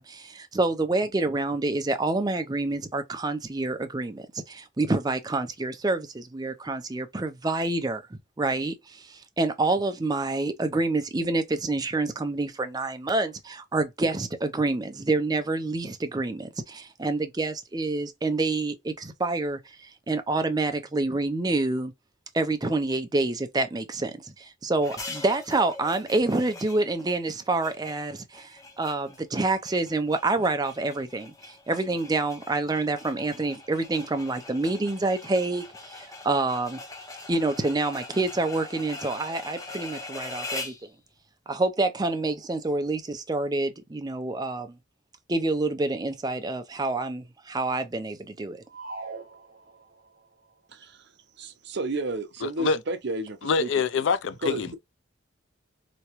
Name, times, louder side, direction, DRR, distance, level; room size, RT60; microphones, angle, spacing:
voice 1, 0.0-8.0 8.4-21.9 22.3-36.8 37.3-40.7 41.5-44.8 45.3-48.6, right 2 dB, 20° right, 0.5 m, -27 dB
sound 1, 24.8-40.9, left 3 dB, 20° left, 0.8 m, -42 dB
sound 2, 48.7-50.2, right 3 dB, 45° right, 1.0 m, -41 dB
voice 2, 50.7-51.1 51.4-53.7 54.4-54.8, right 2 dB, 60° right, 0.7 m, -32 dB
voice 3, 52.4-52.8 53.4-54.8, left 5 dB, 65° left, 0.4 m, -25 dB
3.4 x 3.0 x 2.9 m
head